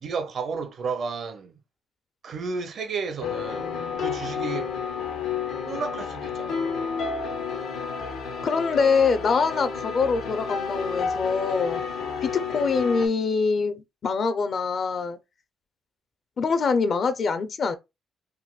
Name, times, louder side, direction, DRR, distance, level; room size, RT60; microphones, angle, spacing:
voice 1, 0.0-1.5 2.2-3.7 4.0-4.7 5.7-6.6, right 5 dB, 60° right, 0.6 m, -32 dB
sound 1, 3.2-13.1, left 5 dB, 80° left, 1.0 m, -31 dB
voice 2, 8.4-11.8 12.2-15.2 16.4-17.7, left 5 dB, 50° left, 0.6 m, -24 dB
3.9 x 2.6 x 2.3 m
cardioid pair, 90°, 0 cm